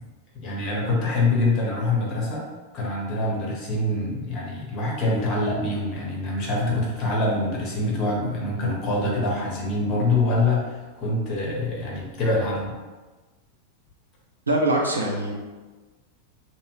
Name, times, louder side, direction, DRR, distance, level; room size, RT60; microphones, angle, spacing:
voice 1, 0.4-2.5 2.7-12.7, left 2 dB, 40° left, -3 dB, 0.9 m, -25 dB
voice 2, 14.5-15.3, right 1 dB, 80° right, -1 dB, 0.5 m, -23 dB
2.6 x 2.5 x 2.9 m, 1.3 s
figure-of-eight pair, 90°, 0 cm